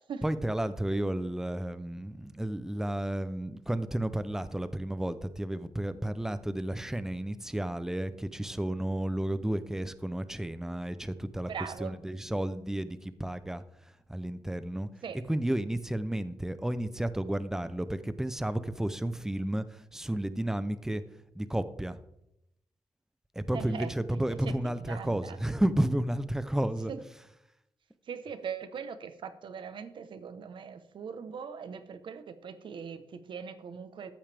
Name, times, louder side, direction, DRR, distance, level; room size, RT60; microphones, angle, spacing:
voice 1, 0.2-13.6 14.1-14.9 15.3-21.0 21.4-22.0 23.4-27.2, right 1 dB, 5° right, 13 dB, 0.5 m, -32 dB
voice 2, 11.5-11.9 15.0-15.2 23.5-25.4 26.9-27.0 28.1-34.1, right 6 dB, 70° right, 10 dB, 1.0 m, -41 dB
14.0 x 8.9 x 3.4 m, 0.82 s
wide cardioid pair, 165°, 9 cm